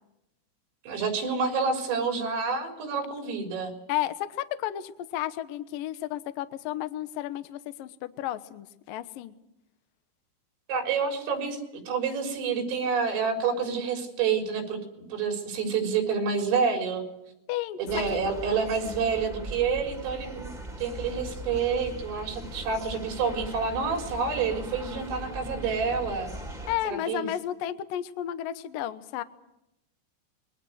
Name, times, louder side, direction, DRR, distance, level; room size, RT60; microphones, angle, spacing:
voice 1, 0.8-3.7 10.7-11.6 11.9-17.0 17.8-20.5 20.8-26.3 26.8-27.3, right 5 dB, 85° right, 4 dB, 6.7 m, -28 dB
voice 2, 3.9-9.3 17.5-18.2 26.7-29.2, left 12 dB, 80° left, 11 dB, 2.0 m, -32 dB
sound 1, 17.9-26.8, right 1 dB, 10° right, 2.1 m, -39 dB
27.0 x 22.5 x 6.5 m, 0.86 s
omnidirectional pair, 5.8 m